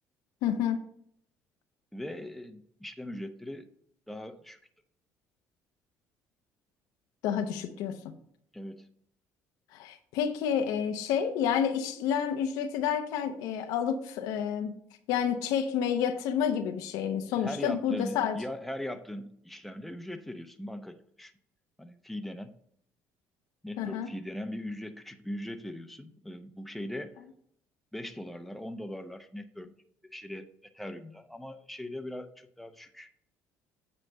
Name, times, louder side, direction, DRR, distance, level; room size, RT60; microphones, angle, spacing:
voice 1, 0.4-0.8 7.2-8.0 9.7-14.8 15.1-18.4 23.8-24.1, left 8 dB, 80° left, 0.8 m, -29 dB
voice 2, 1.9-3.7 4.1-4.6 8.5-8.9 17.4-21.3 21.8-22.5 23.6-27.2 27.9-29.7 30.1-30.5 30.7-33.1, left 1 dB, ahead, 0.8 m, -40 dB
8.9 x 3.3 x 6.4 m
supercardioid pair, 85°, 6 cm